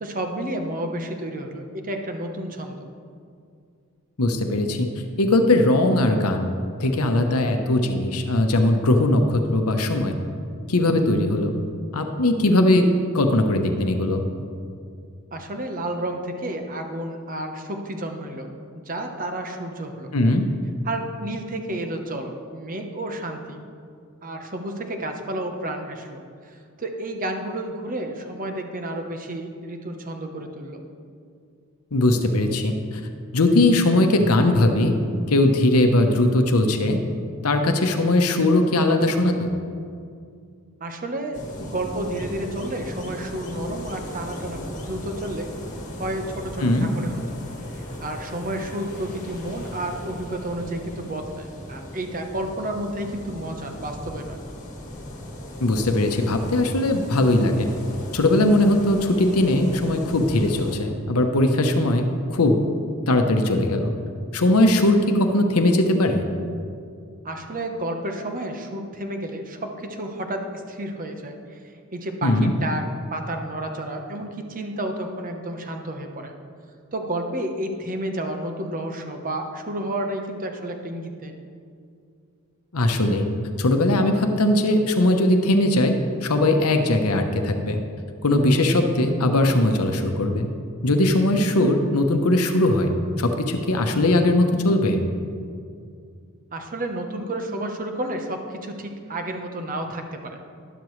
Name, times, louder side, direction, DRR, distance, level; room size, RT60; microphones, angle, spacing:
voice 1, 0.0-2.8 15.3-20.1 20.8-23.6 24.2-30.8 40.8-45.5 46.0-47.4 48.0-54.4 67.2-72.8 73.1-76.3 76.9-81.3 96.5-100.4, right 1 dB, 40° right, 4 dB, 1.0 m, -31 dB
voice 2, 4.2-4.9 5.2-6.5 6.8-10.1 10.7-11.5 11.9-12.9 13.1-14.2 20.1-20.4 31.9-32.7 33.3-35.0 35.3-37.0 37.4-39.5 46.6-46.9 55.6-57.7 58.1-62.6 63.1-63.9 64.3-66.2 72.2-72.5 82.7-83.3 83.6-85.9 86.2-87.8 88.2-90.5 90.8-92.9 93.2-95.0, left 1 dB, 80° left, 5 dB, 0.9 m, -20 dB
sound 1, 41.3-60.7, left 1 dB, 35° left, 1.6 m, -37 dB
12.0 x 11.5 x 3.2 m, 2.3 s
head